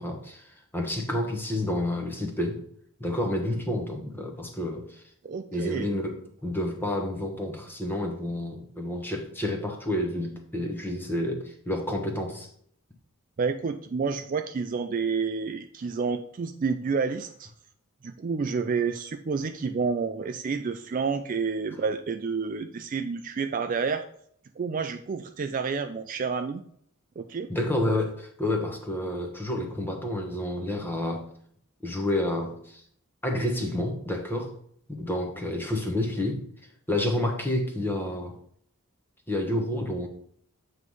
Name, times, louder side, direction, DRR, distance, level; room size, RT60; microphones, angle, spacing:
voice 1, 0.0-2.6 3.0-5.0 5.5-6.1 6.4-12.5 27.5-31.3 31.8-32.8 33.2-34.5 34.9-36.4 36.9-38.3 39.3-40.1, left 1 dB, 10° left, 3 dB, 0.9 m, -29 dB
voice 2, 5.2-5.9 13.4-17.5 18.0-24.0 24.6-26.6 27.2-27.5, right 5 dB, 35° right, 8 dB, 0.3 m, -29 dB
7.8 x 3.2 x 5.4 m, 0.64 s
head